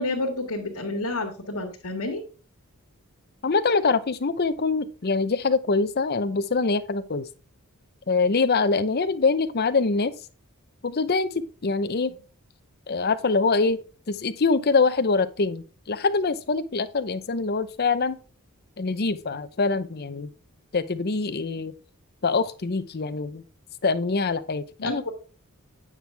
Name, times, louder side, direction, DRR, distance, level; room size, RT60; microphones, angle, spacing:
voice 1, 0.0-2.2 24.8-25.1, left 2 dB, 85° left, 1.7 m, -29 dB
voice 2, 3.4-7.3 8.1-10.1 10.8-12.1 12.9-13.8 14.1-18.2 18.8-20.3 20.7-21.7 22.2-23.4 23.8-25.1, left 4 dB, 45° left, 0.7 m, -24 dB
9.2 x 6.1 x 3.4 m
head